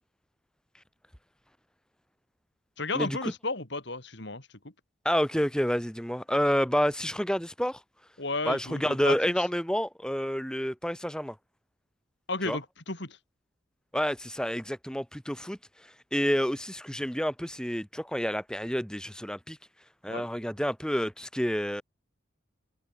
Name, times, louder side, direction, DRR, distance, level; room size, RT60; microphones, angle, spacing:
voice 1, 2.8-4.5 8.2-9.2 12.3-13.2 20.1-20.3, left 3 dB, 60° left, 3.0 m, -33 dB
voice 2, 5.0-7.8 8.5-11.4 12.5-12.6 13.9-15.6 16.1-19.6 20.0-21.8, equal, 5° left, 3.6 m, -29 dB
head